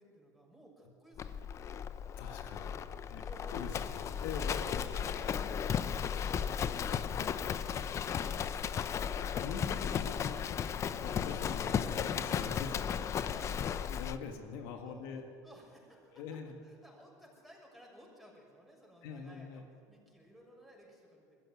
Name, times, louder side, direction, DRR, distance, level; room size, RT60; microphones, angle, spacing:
voice 1, 0.0-2.0 3.2-4.1 4.6-6.8 7.2-9.4 13.3-13.8 14.9-16.2 16.6-21.4, equal, ahead, -2 dB, 6.8 m, -57 dB
Livestock farm animals working animals, 1.2-14.2, left 8 dB, 35° left, 0.8 m, -35 dB
voice 2, 2.2-3.2 3.5-4.9 7.1-7.4 9.4-10.5 10.8-13.1 13.8-15.2 16.2-16.6 19.0-19.6, left 6 dB, 80° left, 4 dB, 1.8 m, -44 dB
21.5 x 14.5 x 9.3 m, 2.4 s
supercardioid pair, 115°, 8 cm